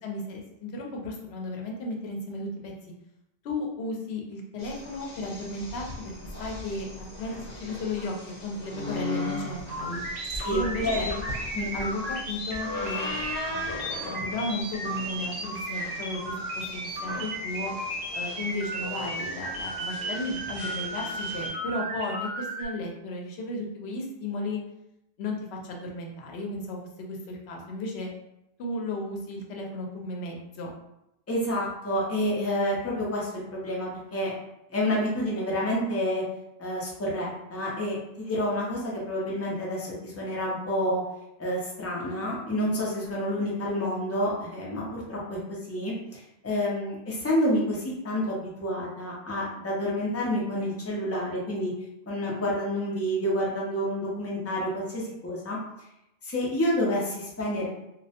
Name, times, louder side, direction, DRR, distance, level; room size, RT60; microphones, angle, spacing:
voice 1, 0.0-2.7 3.4-5.9 6.3-7.3 7.6-8.2 8.4-10.0 10.5-11.1 11.7-13.1 13.4-17.7 18.1-24.6 25.2-28.1 28.6-30.7, left 2 dB, 75° left, 0 dB, 0.8 m, -34 dB
sound 1, 4.6-21.5, left 2 dB, 45° left, 0.7 m, -39 dB
sound 2, 9.7-22.6, right 1 dB, 50° right, 0.7 m, -34 dB
voice 2, 10.4-11.2 11.5-11.9 31.3-34.3 34.7-36.2 36.6-41.0 41.4-51.7 52.1-55.6 56.2-57.7, equal, 20° left, -4 dB, 0.4 m, -29 dB
2.3 x 2.0 x 2.7 m, 0.87 s
omnidirectional pair, 1.1 m